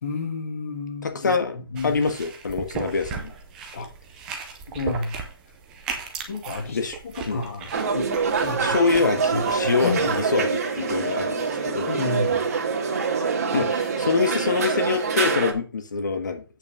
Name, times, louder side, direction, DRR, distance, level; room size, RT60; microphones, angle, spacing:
voice 1, 0.0-2.0 3.7-3.9 4.7-5.2 6.3-6.8 7.0-8.1 8.4-10.2 11.9-12.5 13.5-13.6, left 3 dB, 35° left, 2.1 m, -31 dB
voice 2, 1.0-1.5 1.8-3.3 6.7-7.0 7.3-7.4 8.6-11.9 13.5-16.4, left 4 dB, 50° left, 1.5 m, -25 dB
sound 1, 1.8-10.2, right 5 dB, 5° right, 0.4 m, -37 dB
sound 2, 7.7-15.5, right 5 dB, 40° right, 2.0 m, -25 dB
8.7 x 5.4 x 5.0 m
hypercardioid pair, 175°, 12 cm